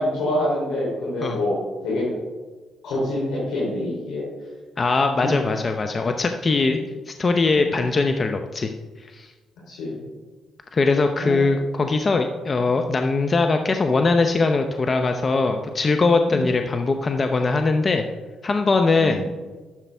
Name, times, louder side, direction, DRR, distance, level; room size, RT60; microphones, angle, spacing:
voice 1, 0.0-2.0 2.8-4.2 7.5-7.8 9.7-10.0 11.2-11.4 16.2-16.5 19.0-19.2, left 1 dB, 80° left, -7 dB, 3.4 m, -26 dB
voice 2, 4.8-6.8 7.1-8.7 9.1-9.3 10.7-18.0 18.4-19.2, left 3 dB, 40° left, 5 dB, 0.7 m, -21 dB
12.0 x 7.3 x 3.4 m, 1.3 s
supercardioid pair, 70°, 0 cm